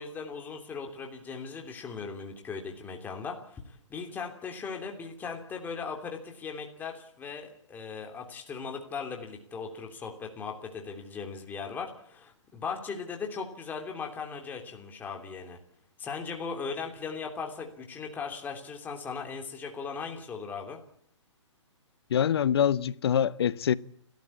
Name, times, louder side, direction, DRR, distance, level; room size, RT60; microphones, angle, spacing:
voice 1, 0.0-15.6 16.0-20.8, left 5 dB, 10° left, 3.1 m, -38 dB
voice 2, 22.1-23.7, left 9 dB, 55° left, 1.0 m, -25 dB
30.0 x 13.5 x 8.6 m
hypercardioid pair, 140°, 16 cm